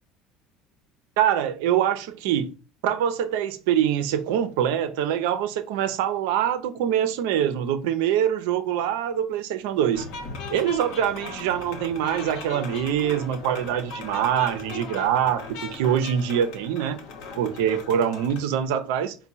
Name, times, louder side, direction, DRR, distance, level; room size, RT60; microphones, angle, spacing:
voice 1, 1.2-2.5 2.8-10.1 10.5-17.0 17.4-19.1, right 9 dB, 75° right, 0.5 m, -24 dB
sound 1, 9.9-18.5, left 4 dB, 70° left, 0.9 m, -38 dB
4.4 x 2.2 x 4.0 m
hypercardioid pair, 75°, 0 cm